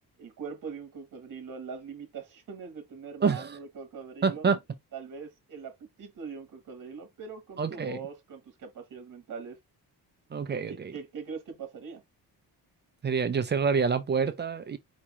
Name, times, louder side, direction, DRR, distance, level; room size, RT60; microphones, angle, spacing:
voice 1, 0.2-4.5 4.9-9.6 10.5-12.0, right 5 dB, 50° right, 1.3 m, -42 dB
voice 2, 3.2-3.6 4.2-4.6 7.6-8.0 10.3-10.9 13.0-14.8, right 5 dB, 30° right, 0.4 m, -27 dB
4.9 x 2.8 x 3.0 m
wide cardioid pair, 175°, 40 cm